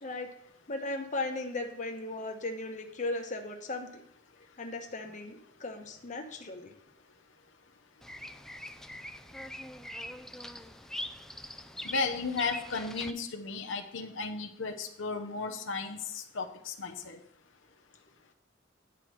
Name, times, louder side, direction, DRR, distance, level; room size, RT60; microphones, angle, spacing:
voice 1, 0.7-4.0 4.6-6.7, left 2 dB, 40° left, 4 dB, 1.0 m, -37 dB
Bird vocalization bird call bird song, 8.0-13.1, left 1 dB, 5° left, 0.4 m, -42 dB
voice 2, 11.8-17.2, left 4 dB, 90° left, 4 dB, 0.9 m, -34 dB
9.4 x 4.8 x 6.1 m, 0.70 s
head